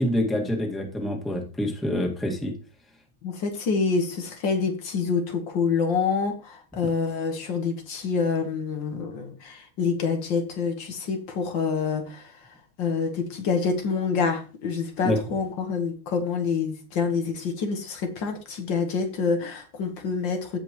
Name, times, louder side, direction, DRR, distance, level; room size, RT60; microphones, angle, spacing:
voice 1, 0.0-2.5 15.0-15.2, left 1 dB, ahead, 1.6 m, -26 dB
voice 2, 3.2-12.5 12.8-20.6, left 5 dB, 75° left, 2.1 m, -27 dB
15.5 x 5.3 x 3.0 m
omnidirectional pair, 2.1 m